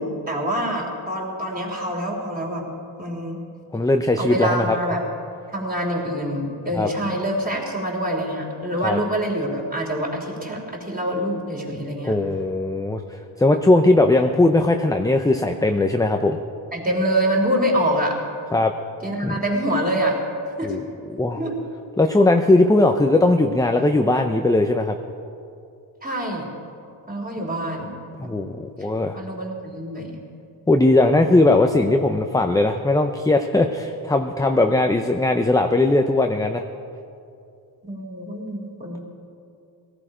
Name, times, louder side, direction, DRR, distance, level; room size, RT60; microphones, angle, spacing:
voice 1, 0.0-2.6 3.0-3.4 4.2-5.1 5.5-12.2 16.7-18.2 19.0-20.2 20.6-20.8 21.4-21.6 26.0-26.5 27.1-27.9 28.2-28.3 29.1-30.2 37.8-39.0, right 1 dB, 20° right, -1 dB, 3.6 m, -25 dB
voice 2, 3.7-4.8 6.7-6.9 8.8-9.0 12.0-13.0 13.4-16.4 18.5-18.7 19.2-19.4 20.6-20.8 21.1-21.4 22.0-25.0 28.2-29.2 30.7-36.6, left 2 dB, 10° left, 5 dB, 0.6 m, -19 dB
17.5 x 14.5 x 5.0 m, 2.5 s
cardioid pair, 90°, 48 cm